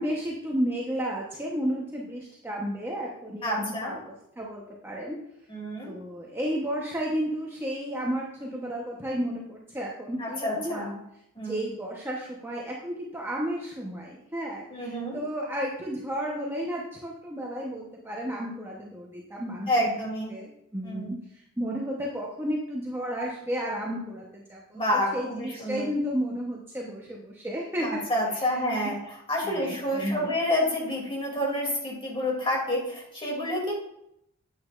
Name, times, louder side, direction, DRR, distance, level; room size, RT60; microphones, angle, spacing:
voice 1, 0.0-5.2 5.8-10.9 11.4-19.9 20.3-21.2 21.6-28.0 28.4-28.5 28.8-29.0 29.4-30.3, equal, 10° right, -3 dB, 0.9 m, -32 dB
voice 2, 3.4-3.9 5.5-5.9 10.2-11.0 11.4-11.6 14.7-15.2 19.7-20.3 20.8-21.1 24.7-25.9 27.8-33.7, left 1 dB, 25° left, -2 dB, 2.7 m, -29 dB
9.4 x 8.4 x 2.5 m, 0.78 s
head